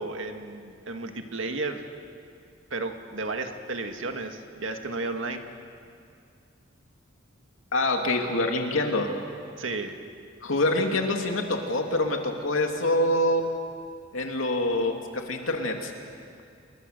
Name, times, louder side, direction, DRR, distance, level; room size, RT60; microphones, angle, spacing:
voice 1, 0.0-1.9 2.7-5.5 9.6-10.0, right 3 dB, 75° right, 5 dB, 2.0 m, -33 dB
voice 2, 7.7-9.2 10.4-13.5 14.1-15.0 15.3-15.9, left 1 dB, 85° left, 3 dB, 2.7 m, -25 dB
29.5 x 21.5 x 6.8 m, 2.3 s
head